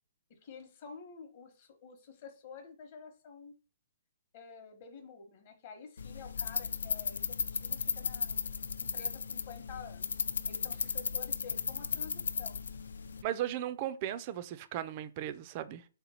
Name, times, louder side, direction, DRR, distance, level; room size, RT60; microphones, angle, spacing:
voice 1, 0.3-3.5 4.3-8.5 8.9-10.1 10.5-12.6, left 6 dB, 40° left, 0.9 m, -50 dB
sound 1, 6.0-13.2, left 5 dB, 80° left, 0.3 m, -35 dB
voice 2, 13.2-15.8, right 11 dB, 30° right, 0.3 m, -36 dB
3.3 x 2.9 x 4.1 m
hypercardioid pair, 155°, 0 cm